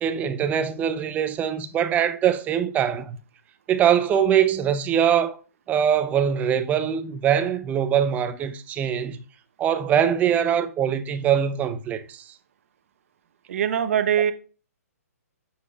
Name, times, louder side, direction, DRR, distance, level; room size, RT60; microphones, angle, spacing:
voice 1, 0.0-3.2 3.7-5.4 5.7-9.2 9.6-12.2, right 9 dB, 20° right, 0.7 m, -22 dB
voice 2, 13.5-14.3, right 9 dB, 55° right, 0.9 m, -22 dB
9.4 x 7.4 x 2.5 m
hypercardioid pair, 135°, 9 cm